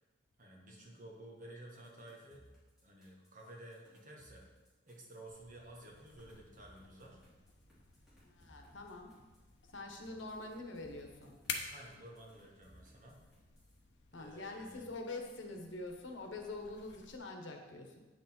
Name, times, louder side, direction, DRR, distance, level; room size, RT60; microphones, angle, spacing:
voice 1, 0.4-2.4 2.8-4.5 4.9-7.2 11.7-13.2 14.2-14.9, right 1 dB, 40° right, -1 dB, 1.5 m, -53 dB
sound 1, 1.7-5.3 5.8-9.5 10.0-13.8, equal, 5° right, 2.9 m, -65 dB
sound 2, 5.3-17.2, left 5 dB, 60° left, 0.9 m, -51 dB
voice 2, 8.2-9.1 9.7-11.4 14.1-18.0, left 2 dB, 80° left, 3 dB, 1.2 m, -45 dB
8.6 x 6.2 x 4.4 m, 1.2 s
head